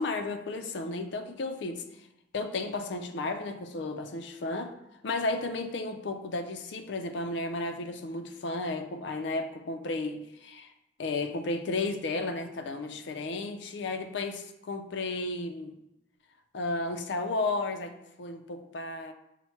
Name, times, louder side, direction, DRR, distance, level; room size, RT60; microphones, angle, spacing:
voice 1, 0.0-1.8 2.3-4.7 5.0-10.7 11.0-15.7 16.5-17.9 18.2-19.1, left 2 dB, 60° left, 8 dB, 0.4 m, -33 dB
5.6 x 2.1 x 4.4 m, 0.87 s
head